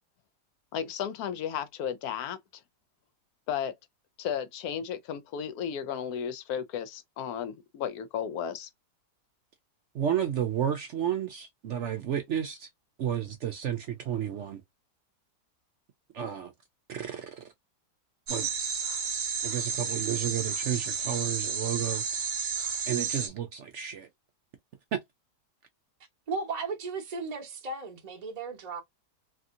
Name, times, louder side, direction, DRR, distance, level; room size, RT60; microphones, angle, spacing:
voice 1, 0.7-2.4 3.5-3.7 4.2-8.7, left 8 dB, 70° left, 1.0 m, -34 dB
voice 2, 9.9-12.7 13.0-14.6 16.1-16.5 16.9-17.4 18.3-18.5 19.4-22.0 22.9-24.1 24.9-25.0, right 9 dB, 75° right, 0.6 m, -31 dB
sound 1, 18.3-23.3, right 6 dB, 55° right, 1.0 m, -32 dB
voice 3, 26.3-28.8, right 4 dB, 35° right, 0.7 m, -35 dB
3.4 x 2.6 x 2.4 m
omnidirectional pair, 1.8 m